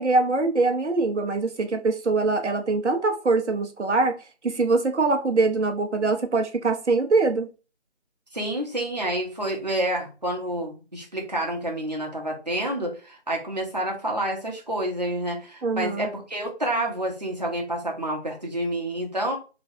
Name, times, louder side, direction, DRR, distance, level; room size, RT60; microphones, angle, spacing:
voice 1, 0.0-4.2 4.4-7.5 15.6-16.1, right 3 dB, 90° right, 0.8 m, -23 dB
voice 2, 8.3-19.4, right 1 dB, 40° right, 0.8 m, -28 dB
3.3 x 3.0 x 2.6 m
figure-of-eight pair, 180°, 34 cm